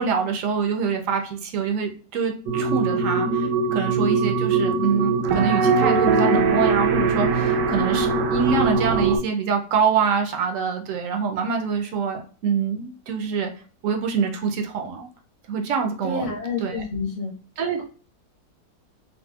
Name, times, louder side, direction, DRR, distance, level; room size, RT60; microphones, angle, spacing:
voice 1, 0.0-13.5 13.8-15.1 15.5-16.3 16.6-16.8 17.6-17.8, right 6 dB, 70° right, 4 dB, 0.8 m, -25 dB
sound 1, 2.5-9.2, right 4 dB, 85° right, 1.2 m, -21 dB
voice 2, 16.0-17.3, left 3 dB, 65° left, -2 dB, 1.5 m, -28 dB
4.2 x 2.1 x 2.3 m, 0.37 s
omnidirectional pair, 1.8 m